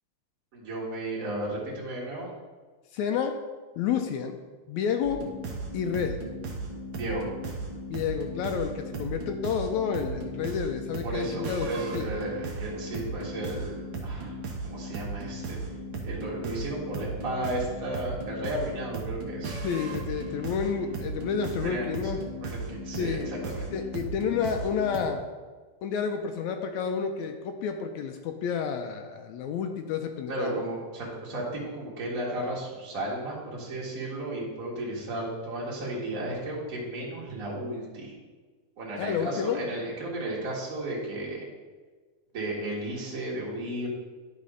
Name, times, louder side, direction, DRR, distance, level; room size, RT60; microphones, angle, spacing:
voice 1, 0.5-2.3 6.9-7.3 11.0-14.3 14.6-15.6 16.0-19.6 21.6-22.1 22.4-23.7 30.3-38.1 38.8-41.4 42.3-43.9, right 1 dB, 30° right, -4 dB, 1.9 m, -34 dB
voice 2, 2.9-3.3 3.8-4.4 4.7-5.2 5.7-6.2 7.9-11.7 11.9-12.1 19.6-22.2 23.0-23.4 23.7-25.2 25.8-30.6 39.0-39.6, left 7 dB, 80° left, 5 dB, 1.8 m, -30 dB
sound 1, 5.0-25.0, right 2 dB, 60° right, 1.3 m, -36 dB
11.0 x 4.1 x 5.0 m, 1.4 s
omnidirectional pair, 3.5 m